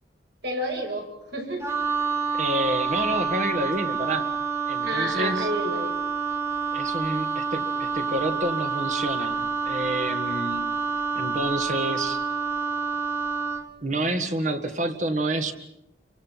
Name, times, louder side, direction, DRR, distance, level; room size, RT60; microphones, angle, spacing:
voice 1, 0.4-1.7 4.8-5.9, equal, 65° right, 2 dB, 6.3 m, -30 dB
Wind instrument woodwind instrument, 1.6-13.7, right 5 dB, 15° right, 1.6 m, -28 dB
voice 2, 2.3-4.3 4.7-5.5 6.7-10.7 11.2-12.2 13.8-15.5, right 1 dB, 40° right, 7 dB, 1.8 m, -28 dB
28.5 x 24.0 x 5.8 m, 0.84 s
head